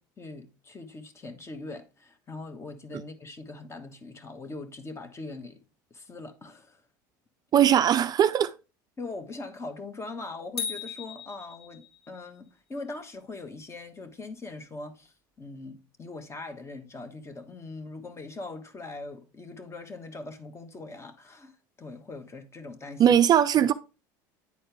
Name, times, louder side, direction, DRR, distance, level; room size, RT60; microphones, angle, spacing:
voice 1, 0.2-5.6 5.9-6.8 9.0-21.5 21.8-23.2, left 3 dB, 25° left, 1.2 m, -41 dB
voice 2, 7.5-8.5 23.0-23.7, right 10 dB, 40° right, 0.4 m, -20 dB
sound 1, 10.6-12.2, left 6 dB, 60° left, 2.6 m, -37 dB
9.5 x 4.3 x 3.3 m
supercardioid pair, 90°, 11 cm